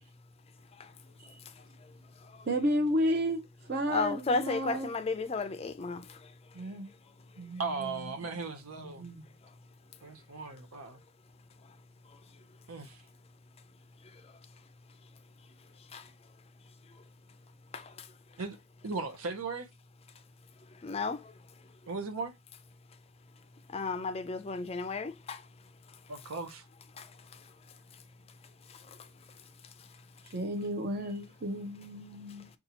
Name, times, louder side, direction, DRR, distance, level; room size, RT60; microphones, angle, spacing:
voice 1, 2.5-3.4 3.7-4.9 6.5-6.9 7.4-7.9 8.2-8.3 8.8-9.2 30.3-32.5, equal, 45° right, 0.7 m, -32 dB
voice 2, 3.9-6.0 15.9-16.0 17.7-17.8 20.8-21.2 23.7-25.4, left 3 dB, 30° left, 0.4 m, -33 dB
voice 3, 7.6-9.0 10.0-11.0 12.7-13.0 18.4-19.7 21.9-22.3 26.1-26.6, right 4 dB, 85° right, 0.7 m, -37 dB
5.3 x 2.4 x 2.8 m
head